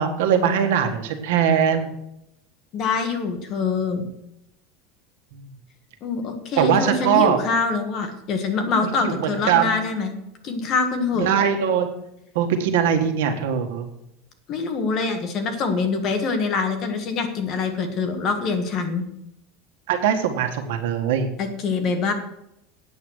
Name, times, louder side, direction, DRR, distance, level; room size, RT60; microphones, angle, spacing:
voice 1, 0.0-1.9 5.3-5.5 6.6-7.4 8.8-9.7 11.1-11.9 12.3-13.9 19.9-21.3, right 8 dB, 80° right, 5 dB, 1.6 m, -21 dB
voice 2, 2.7-4.1 6.0-10.1 10.4-11.3 14.5-19.0 21.4-22.1, left 4 dB, 30° left, 6 dB, 1.5 m, -24 dB
8.8 x 8.1 x 6.4 m, 0.82 s
supercardioid pair, 180°, 0 cm